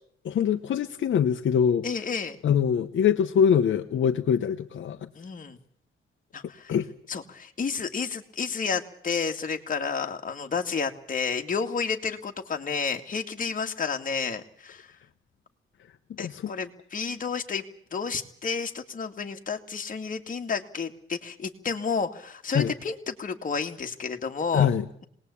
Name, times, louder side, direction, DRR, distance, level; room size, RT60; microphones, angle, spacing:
voice 1, 0.2-1.8 2.4-5.1 6.7-6.9 16.1-16.5 22.5-22.7 24.5-24.8, left 8 dB, 65° left, 6 dB, 1.1 m, -23 dB
voice 2, 1.8-2.4 5.1-5.6 6.3-6.7 7.1-14.9 16.2-17.6 17.9-24.7, left 5 dB, 40° left, 4 dB, 2.3 m, -31 dB
26.5 x 20.0 x 8.6 m, 0.66 s
cardioid pair, 120°, 21 cm